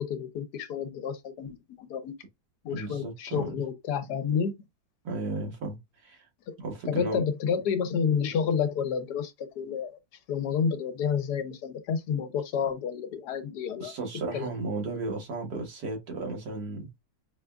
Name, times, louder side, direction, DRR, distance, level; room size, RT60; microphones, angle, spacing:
voice 1, 0.0-2.2 2.6-4.5 6.5-6.6 6.9-10.0 10.3-13.9 14.3-14.5, left 7 dB, 75° left, 1.2 m, -30 dB
voice 2, 2.7-3.6 5.0-6.3 6.6-7.2 13.8-16.9, right 3 dB, 75° right, 1.9 m, -34 dB
5.0 x 2.3 x 2.2 m
omnidirectional pair, 1.8 m